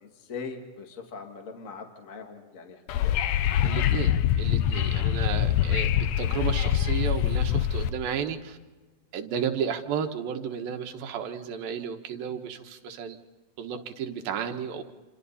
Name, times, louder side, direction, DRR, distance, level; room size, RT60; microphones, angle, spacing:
voice 1, 0.0-3.2 6.4-6.6, left 5 dB, 30° left, 3 dB, 1.9 m, -41 dB
Wind / Subway metro underground, 2.9-7.9, left 10 dB, 80° left, 1.5 m, -24 dB
voice 2, 3.6-8.6 9.1-13.2 13.6-14.8, right 7 dB, 85° right, 5 dB, 3.1 m, -33 dB
27.5 x 26.5 x 4.2 m, 1.2 s
omnidirectional pair, 4.1 m